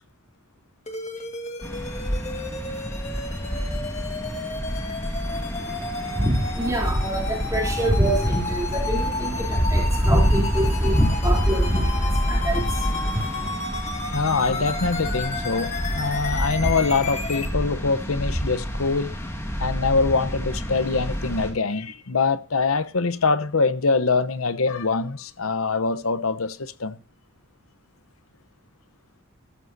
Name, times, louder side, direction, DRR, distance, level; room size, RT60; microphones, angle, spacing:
sound 1, 0.9-17.5, left 3 dB, 30° left, 1.8 m, -33 dB
sound 2, 1.6-21.5, equal, 15° left, 2.5 m, -27 dB
voice 1, 5.2-13.5, right 1 dB, 15° right, 3.3 m, -26 dB
voice 2, 14.1-19.1 19.6-27.0, left 4 dB, 80° left, 0.9 m, -24 dB
14.5 x 13.5 x 2.7 m
head